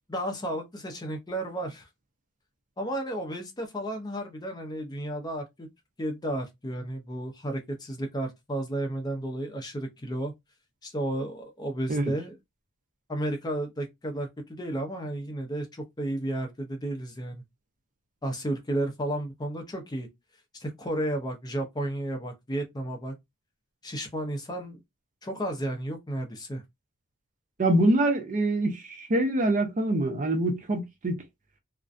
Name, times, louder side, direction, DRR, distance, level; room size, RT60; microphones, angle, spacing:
voice 1, 0.1-1.9 2.8-5.7 6.0-10.3 10.8-12.3 13.1-17.4 18.2-20.1 20.5-23.1 23.8-24.8 25.2-26.6, right 1 dB, 20° left, 0.5 m, -32 dB
voice 2, 27.6-31.2, right 1 dB, 35° right, 0.5 m, -25 dB
2.4 x 2.1 x 2.4 m
head